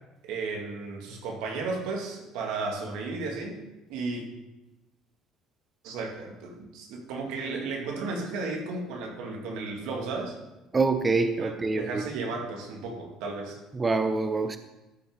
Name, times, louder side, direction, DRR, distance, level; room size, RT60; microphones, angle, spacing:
voice 1, 0.2-3.6 3.9-4.2 5.8-10.4 11.3-13.6, right 3 dB, 85° right, 1 dB, 1.9 m, -34 dB
voice 2, 10.7-12.0 13.7-14.6, right 3 dB, 15° right, 9 dB, 0.4 m, -25 dB
12.5 x 5.9 x 3.8 m, 1.0 s
cardioid pair, 160°, 0 cm